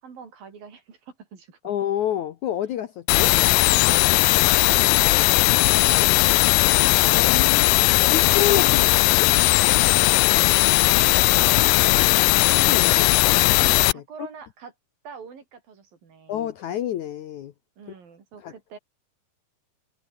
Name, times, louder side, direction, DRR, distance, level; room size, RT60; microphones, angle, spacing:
voice 1, 0.0-1.6 4.5-7.4 8.8-9.2 10.7-12.9 13.9-14.7 15.0-16.4 17.8-18.8, right 6 dB, 65° right, 5.9 m, -45 dB
voice 2, 1.6-3.3 7.0-9.3 12.7-14.0 16.3-17.5 18.4-18.5, left 11 dB, 65° left, 2.0 m, -29 dB
sound 1, 3.1-13.9, left 22 dB, 85° left, 2.0 m, -18 dB
omnidirectional pair, 4.5 m